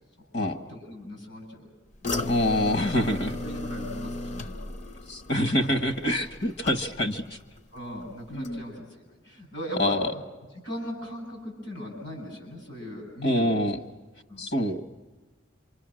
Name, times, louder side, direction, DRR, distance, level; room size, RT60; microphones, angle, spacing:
voice 1, 0.2-1.7 3.4-4.6 6.7-6.9 7.7-10.2 10.6-13.5 14.3-14.4, equal, 80° left, 2 dB, 7.7 m, -38 dB
sound 1, 2.0-7.3 7.6-8.0 8.4-8.5, left 2 dB, 40° left, 0.7 m, -35 dB
voice 2, 2.3-3.4 5.1-7.4 8.3-8.6 9.8-10.0 13.2-13.8 14.4-14.9, left 1 dB, 60° left, 8 dB, 1.4 m, -26 dB
27.0 x 25.0 x 6.4 m, 1.3 s
head